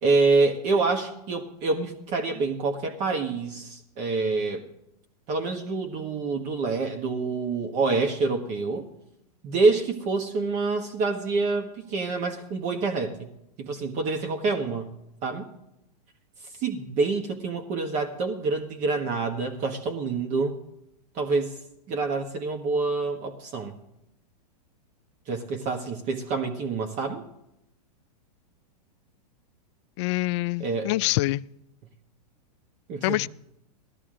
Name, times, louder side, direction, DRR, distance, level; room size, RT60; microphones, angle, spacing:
voice 1, 0.0-4.6 5.3-8.9 9.4-13.3 13.6-14.9 15.2-15.5 16.6-20.5 21.1-21.5 21.9-23.7 25.3-27.2 30.6-30.9 32.9-33.2, right 3 dB, 35° right, 1.5 m, -26 dB
voice 2, 30.0-31.4 33.0-33.3, left 20 dB, 45° left, 0.4 m, -25 dB
17.0 x 13.5 x 3.8 m
hypercardioid pair, 125°, 21 cm